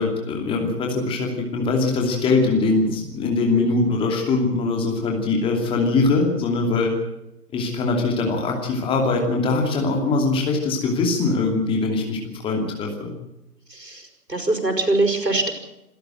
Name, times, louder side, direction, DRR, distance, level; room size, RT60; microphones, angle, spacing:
voice 1, 0.0-6.9 7.5-12.2 12.4-13.1, left 3 dB, 10° left, 1 dB, 2.7 m, -22 dB
voice 2, 13.7-15.5, right 2 dB, 85° right, 5 dB, 5.8 m, -23 dB
27.5 x 13.5 x 7.8 m, 0.89 s
figure-of-eight pair, 135°, 48 cm